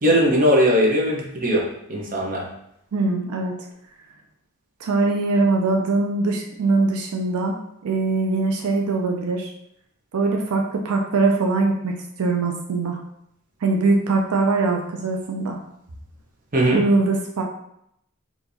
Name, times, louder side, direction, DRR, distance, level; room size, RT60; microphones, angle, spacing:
voice 1, 0.0-2.4 16.5-16.8, equal, 40° right, -2 dB, 0.9 m, -19 dB
voice 2, 2.9-3.6 4.8-9.5 10.1-13.0 13.6-15.6 16.7-17.4, right 3 dB, 85° right, 2 dB, 0.5 m, -22 dB
4.4 x 2.9 x 2.7 m, 0.76 s
head